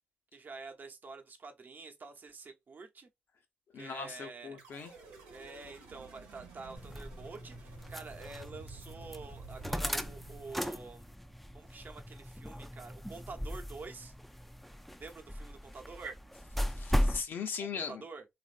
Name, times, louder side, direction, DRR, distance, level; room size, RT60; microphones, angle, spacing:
voice 1, 0.3-3.1 3.7-4.6 5.3-11.1 11.5-14.1 15.0-16.2 17.6-18.2, right 4 dB, 50° right, 0.8 m, -47 dB
voice 2, 3.7-4.9 16.6-18.0, left 6 dB, 65° left, 0.8 m, -39 dB
sound 1, 4.6-11.0, right 4 dB, 90° right, 0.9 m, -53 dB
sound 2, 6.8-17.2, equal, 5° left, 0.4 m, -37 dB
3.1 x 2.5 x 2.5 m
hypercardioid pair, 40°, 4 cm